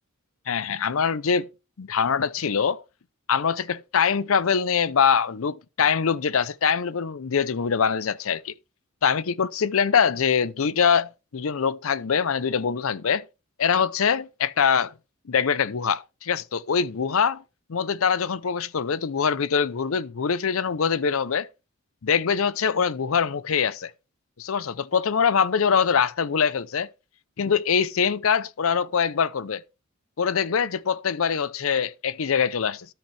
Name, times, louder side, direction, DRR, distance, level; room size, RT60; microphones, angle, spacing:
voice 1, 0.5-1.5 1.8-2.8 3.3-8.5 9.0-13.2 13.6-14.9 15.3-17.4 17.7-21.5 22.0-23.9 24.4-26.9 27.4-29.6 30.2-32.9, left 6 dB, 75° left, 0.6 m, -23 dB
13.0 x 5.8 x 3.3 m
head